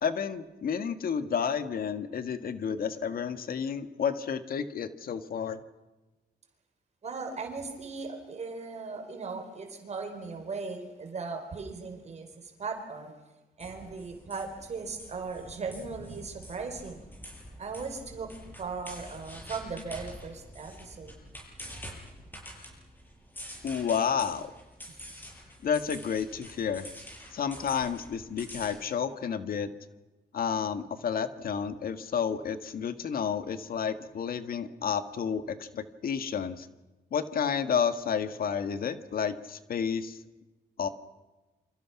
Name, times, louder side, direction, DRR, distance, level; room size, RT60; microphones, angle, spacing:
voice 1, 0.0-5.6 23.6-24.5 25.6-26.9 27.3-29.7 30.3-36.7 37.1-40.2 40.8-40.9, left 7 dB, 65° left, 10 dB, 1.7 m, -31 dB
voice 2, 7.0-13.1 13.6-17.0 17.6-18.3 18.6-21.1, right 4 dB, 45° right, 5 dB, 4.3 m, -38 dB
sound 1, 13.6-28.7, equal, 10° left, 7.7 m, -47 dB
28.5 x 26.0 x 6.0 m, 1.1 s
cardioid pair, 135°, 16 cm